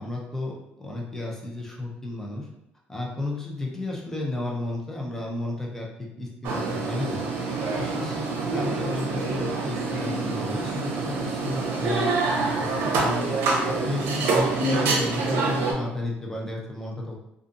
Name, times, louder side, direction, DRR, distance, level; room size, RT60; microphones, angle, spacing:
voice 1, 0.0-2.5 2.9-7.2 7.7-13.3 13.6-17.1, left 2 dB, 10° left, -2 dB, 0.6 m, -33 dB
sound 1, 6.4-15.7, right 3 dB, 80° right, 0.6 m, -26 dB
2.6 x 2.4 x 2.5 m, 0.82 s
cardioid pair, 125°, 4 cm